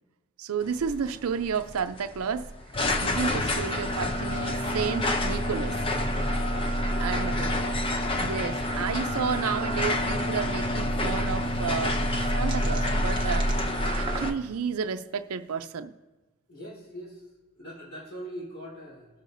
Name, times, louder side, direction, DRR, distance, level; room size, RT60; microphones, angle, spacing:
voice 1, 0.4-5.8 7.0-7.4 8.2-12.0 12.3-13.5 13.9-15.9, right 6 dB, 85° right, 9 dB, 0.5 m, -31 dB
sound 1, 0.7-14.3, left 1 dB, 25° left, 0.5 m, -28 dB
voice 2, 7.3-7.7 16.5-17.2 17.6-19.1, equal, 80° left, -5 dB, 3.7 m, -41 dB
sound 2, 10.7-10.8 11.0-11.1 11.5-14.8 15.3-15.6, right 4 dB, 25° right, 0.8 m, -41 dB
19.5 x 6.6 x 2.6 m, 1.1 s
head